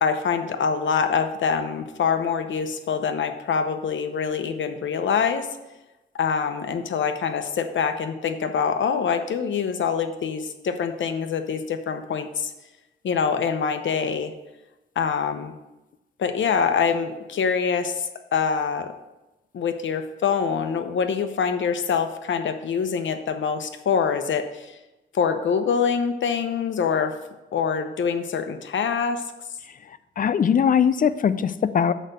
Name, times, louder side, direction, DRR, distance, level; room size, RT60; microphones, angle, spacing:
voice 1, 0.0-5.5 6.2-12.5 13.0-14.3 15.0-15.5 16.2-18.9 19.5-24.7 25.1-27.1 27.5-29.2, left 6 dB, 65° left, 7 dB, 0.8 m, -25 dB
voice 2, 30.2-31.9, left 7 dB, 45° left, 13 dB, 0.4 m, -20 dB
6.5 x 5.0 x 6.6 m, 1.0 s
wide cardioid pair, 130°, 21 cm